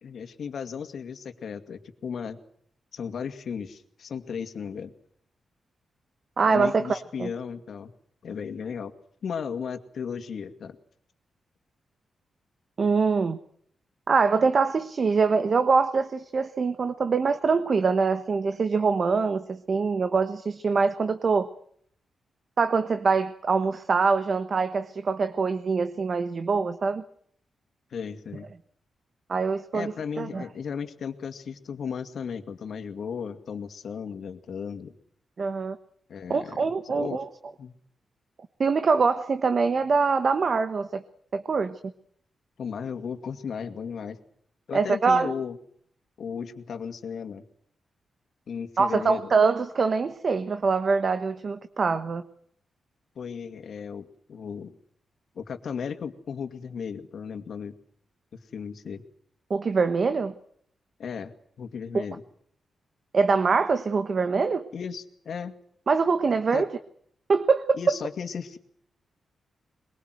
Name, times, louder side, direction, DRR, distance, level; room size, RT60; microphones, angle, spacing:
voice 1, 0.0-2.4 2.9-4.9 6.4-7.9 8.2-8.9 9.2-10.8 27.9-28.5 29.7-34.9 36.1-37.2 37.6-37.8 42.6-44.2 44.7-45.6 46.2-47.4 48.5-49.3 53.2-54.8 55.4-57.7 58.3-59.0 61.0-61.3 61.6-62.2 64.7-65.5 66.5-66.6 67.7-68.6, left 6 dB, 60° left, 8 dB, 2.2 m, -35 dB
voice 2, 6.4-7.3 12.8-13.4 14.1-21.5 22.6-27.0 29.3-30.4 35.4-35.8 36.3-37.3 38.6-41.0 41.3-41.8 44.7-45.3 48.8-52.2 59.5-60.3 61.9-62.0 63.1-64.6 65.9-66.7 67.3-67.9, right 4 dB, 40° right, 10 dB, 1.2 m, -24 dB
22.0 x 22.0 x 7.9 m, 0.64 s
wide cardioid pair, 140°, 0 cm